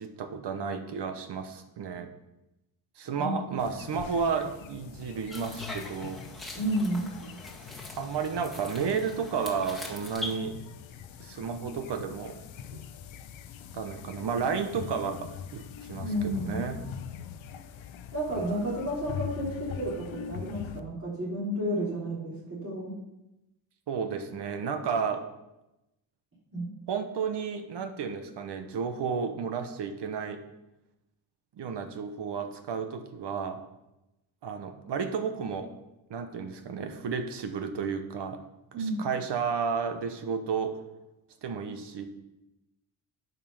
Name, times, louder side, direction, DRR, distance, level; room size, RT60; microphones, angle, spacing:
voice 1, 0.0-2.1 3.0-6.2 8.0-10.6 11.2-12.4 12.7-12.8 13.7-16.8 23.9-25.2 26.9-30.4 31.6-33.6 34.4-35.7 36.1-38.4 38.8-40.8 41.4-42.1, right 6 dB, 65° right, 8 dB, 1.2 m, -32 dB
sound 1, 3.6-20.8, left 8 dB, 90° left, 0.8 m, -43 dB
sound 2, 5.3-10.4, left 2 dB, ahead, 1.9 m, -42 dB
voice 2, 6.5-7.1 16.0-16.6 18.1-22.9 26.5-26.7 38.7-39.1, equal, 30° right, -7 dB, 3.6 m, -31 dB
9.4 x 5.6 x 5.7 m, 0.93 s
cardioid pair, 115°, 45 cm